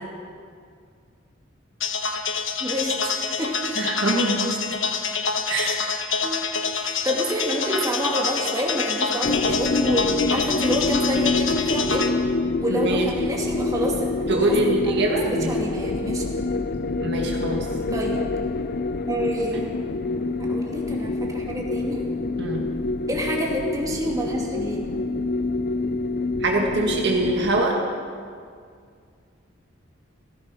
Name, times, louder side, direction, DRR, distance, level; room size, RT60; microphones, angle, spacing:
sound 1, 1.8-12.1, left 5 dB, 90° left, 1.2 m, -27 dB
voice 1, 2.6-3.5 5.6-5.8 6.2-6.5 6.8-12.0 12.6-14.6 14.8-16.3 17.9-18.2 19.1-19.8 20.4-22.0 23.1-24.9, equal, 20° right, -2 dB, 2.6 m, -28 dB
voice 2, 3.8-4.6 5.5-5.8 12.7-13.1 14.3-15.5 17.0-17.7 22.4-22.6 26.4-27.8, right 2 dB, 60° right, 0 dB, 1.8 m, -23 dB
sound 2, 9.2-27.6, left 3 dB, 50° left, 0.5 m, -26 dB
16.0 x 15.0 x 5.9 m, 2.1 s
head